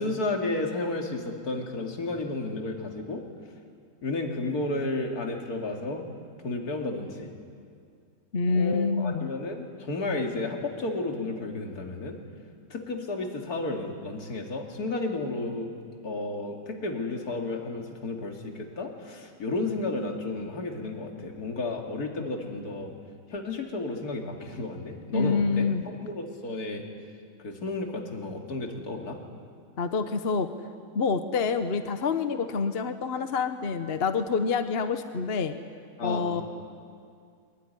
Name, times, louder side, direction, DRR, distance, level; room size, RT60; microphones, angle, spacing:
voice 1, 0.0-3.2 4.0-6.0 6.4-7.3 8.5-12.2 12.7-15.7 16.0-22.9 23.3-25.7 26.0-26.8 27.4-29.2 36.0-36.4, left 2 dB, 60° left, 2 dB, 3.0 m, -32 dB
voice 2, 8.3-9.3 25.1-25.8 29.8-30.5 30.9-35.6 36.0-36.4, left 5 dB, 40° left, 9 dB, 1.0 m, -27 dB
23.0 x 22.5 x 10.0 m, 2.2 s
omnidirectional pair, 1.9 m